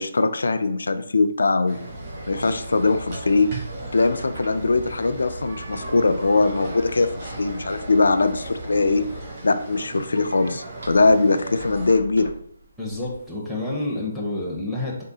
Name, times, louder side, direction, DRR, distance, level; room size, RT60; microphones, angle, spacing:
voice 1, 0.0-1.8 2.3-3.5 3.9-9.0 9.4-12.3, left 3 dB, 85° left, 9 dB, 0.3 m, -21 dB
sound 1, 1.7-12.0, right 2 dB, 30° right, 0.9 m, -38 dB
sound 2, 1.9-9.3, equal, 60° right, 1.2 m, -40 dB
sound 3, 4.0-13.3, right 1 dB, 80° right, 1.4 m, -44 dB
voice 2, 12.8-15.0, left 2 dB, 5° right, -6 dB, 0.6 m, -29 dB
3.6 x 2.0 x 3.8 m, 0.66 s
hypercardioid pair, 170°, 0 cm